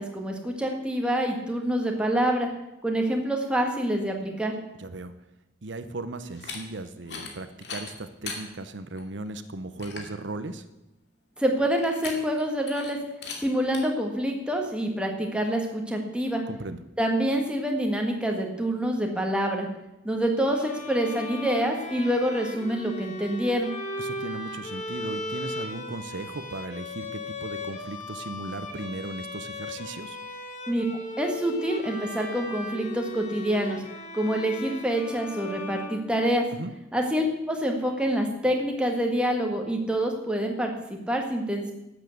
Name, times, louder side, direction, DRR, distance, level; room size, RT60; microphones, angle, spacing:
voice 1, 0.0-2.5 2.8-4.6 11.4-13.0 13.4-16.4 17.0-19.7 20.0-23.7 30.7-30.8 31.2-33.8 34.1-36.5 36.9-41.7, equal, 5° right, 2 dB, 1.9 m, -26 dB
voice 2, 4.8-5.2 5.6-10.7 16.5-16.8 24.0-30.2 36.5-36.7, right 2 dB, 85° right, 11 dB, 0.9 m, -37 dB
sound 1, 6.3-6.6 7.0-7.3 7.6-8.4 9.0-9.1 9.5-9.6 9.8-10.1 11.8-12.4 12.7-12.9 13.2-13.4 13.7-13.8, left 5 dB, 65° left, 2.5 m, -38 dB
Bowed string instrument, 20.5-36.6, left 1 dB, 40° left, 1.7 m, -37 dB
12.0 x 8.3 x 7.9 m, 0.95 s
head